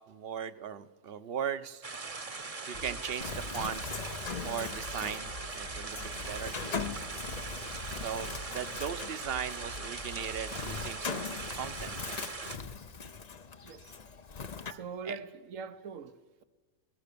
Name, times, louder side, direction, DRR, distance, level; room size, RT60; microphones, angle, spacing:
voice 1, 0.1-1.8 2.3-2.4 2.7-3.2 3.5-4.0 4.4-6.8 7.1-7.2 8.0-12.2 13.8-13.9 14.6-15.2, right 8 dB, 50° right, 1.0 m, -38 dB
sound 1, 1.8-12.6, right 3 dB, 30° right, 1.0 m, -41 dB
sound 2, 2.7-10.7, equal, 70° left, 2.0 m, -47 dB
Bird, 3.2-14.7, left 5 dB, 40° left, 0.7 m, -41 dB
voice 2, 14.7-16.4, right 5 dB, 80° right, 1.4 m, -43 dB
25.5 x 18.5 x 6.9 m
omnidirectional pair, 1.3 m